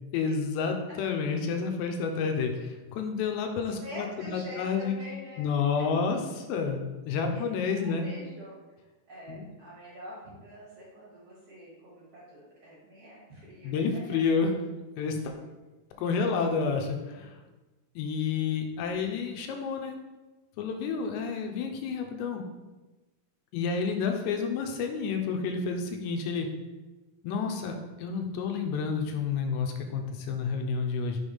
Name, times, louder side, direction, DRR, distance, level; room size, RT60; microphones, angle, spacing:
voice 1, 0.1-5.0 5.4-8.1 9.3-9.5 13.6-14.5 15.0-15.4 16.0-17.3 18.0-19.9 20.6-22.4 23.5-26.5 27.2-31.2, left 5 dB, 90° left, 4 dB, 2.9 m, -30 dB
voice 2, 3.8-5.8 7.3-8.5 9.1-14.0 16.2-16.5, equal, 60° right, -6 dB, 1.4 m, -46 dB
6.6 x 3.5 x 5.5 m, 1.1 s
omnidirectional pair, 5.0 m